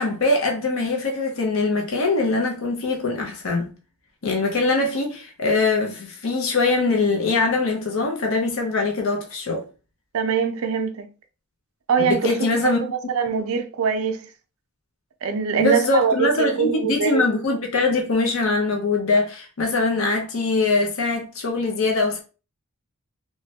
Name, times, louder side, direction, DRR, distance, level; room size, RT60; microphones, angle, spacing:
voice 1, 0.0-3.7 4.2-9.6 12.0-12.9 15.6-22.2, left 3 dB, 65° left, 0.6 m, -22 dB
voice 2, 10.1-11.1 11.9-12.3 12.6-14.3 15.2-17.2, right 6 dB, 70° right, 0.4 m, -23 dB
3.1 x 2.1 x 2.7 m
head